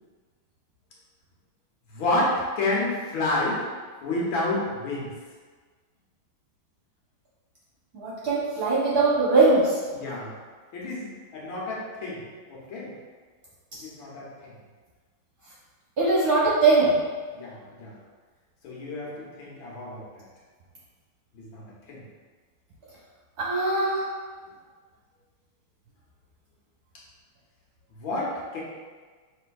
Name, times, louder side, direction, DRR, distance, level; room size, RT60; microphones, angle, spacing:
voice 1, 1.9-3.6 4.0-5.1 9.9-10.3 10.7-12.9 13.8-14.3 17.3-17.9 18.6-20.2 21.3-22.0 28.0-28.6, left 2 dB, 75° left, -4 dB, 1.7 m, -30 dB
voice 2, 7.9-9.7 16.0-16.9 23.4-24.0, right 3 dB, 55° right, -7 dB, 1.2 m, -21 dB
5.6 x 3.4 x 2.3 m, 1.5 s
omnidirectional pair, 2.3 m